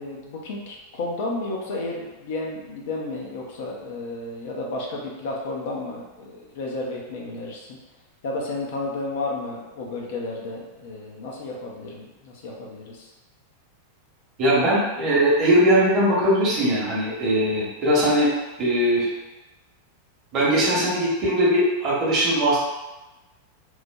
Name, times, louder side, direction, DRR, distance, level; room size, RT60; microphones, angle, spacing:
voice 1, 0.0-7.8 8.2-13.1, left 2 dB, 55° left, -1 dB, 0.5 m, -32 dB
voice 2, 14.4-18.3 18.6-19.1 20.3-22.7, equal, 35° right, -6 dB, 0.9 m, -20 dB
3.0 x 2.1 x 2.2 m, 1.1 s
figure-of-eight pair, 90°, 0 cm